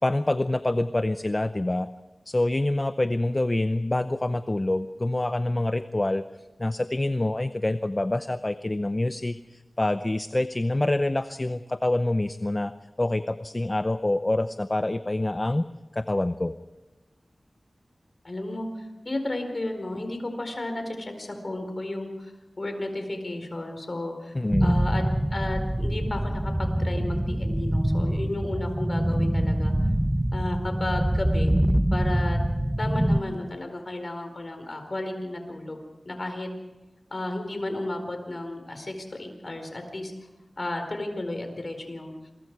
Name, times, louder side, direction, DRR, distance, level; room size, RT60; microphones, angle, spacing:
voice 1, 0.0-1.9 2.3-6.2 6.6-9.4 9.8-12.7 13.0-15.6 15.9-16.5 24.3-24.7, left 2 dB, 30° left, 11 dB, 0.7 m, -26 dB
voice 2, 18.2-24.3 24.6-25.0 25.3-29.7 30.3-31.5 31.9-32.4 32.8-35.8 36.0-36.5 37.1-40.1 40.6-42.3, left 1 dB, 45° left, 5 dB, 4.6 m, -33 dB
sound 1, 24.5-33.2, right 1 dB, 10° right, 1.0 m, -25 dB
27.0 x 22.5 x 4.8 m, 1.1 s
wide cardioid pair, 70°, 0 cm